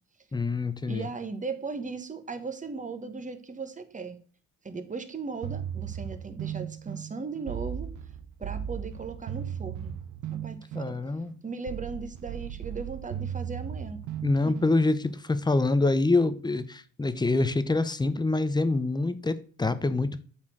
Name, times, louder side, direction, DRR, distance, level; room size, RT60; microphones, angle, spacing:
voice 1, 0.3-1.0 10.7-11.3 14.2-20.2, left 2 dB, 15° left, 13 dB, 0.7 m, -26 dB
voice 2, 0.9-4.2 4.6-8.0 8.4-10.0 10.3-11.0 11.4-14.0 14.5-14.6, right 4 dB, 25° right, 9 dB, 1.2 m, -37 dB
sound 1, 5.4-15.2, right 9 dB, 75° right, 0.7 m, -37 dB
7.4 x 4.5 x 6.3 m, 0.42 s
cardioid pair, 90°, 30 cm